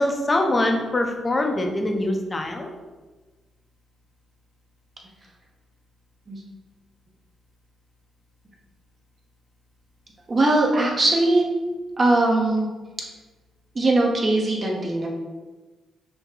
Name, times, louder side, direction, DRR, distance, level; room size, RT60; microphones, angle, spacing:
voice 1, 0.0-2.7, left 1 dB, 25° left, 3 dB, 0.7 m, -23 dB
voice 2, 10.3-11.4 12.0-12.7 13.7-15.1, right 2 dB, 35° right, -1 dB, 1.0 m, -20 dB
6.1 x 2.2 x 3.7 m, 1.2 s
cardioid pair, 90°, 0 cm